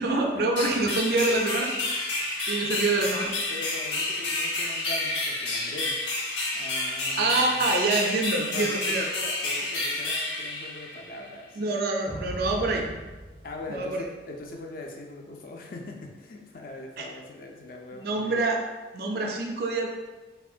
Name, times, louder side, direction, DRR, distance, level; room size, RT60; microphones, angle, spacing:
voice 1, 0.0-1.7 2.5-3.3 7.2-9.1 11.6-12.9 13.7-14.1 17.0-17.1 18.0-18.6 18.9-19.9, right 2 dB, 55° right, 2 dB, 0.3 m, -26 dB
sound 1, 0.5-11.3, left 2 dB, 80° left, 0.7 m, -30 dB
voice 2, 3.5-6.0 6.5-7.7 8.5-11.5 13.4-18.4, left 2 dB, 50° left, 2 dB, 0.4 m, -41 dB
sound 2, 12.0-14.5, equal, 5° right, 0.6 m, -40 dB
3.5 x 2.2 x 2.4 m, 1.2 s
head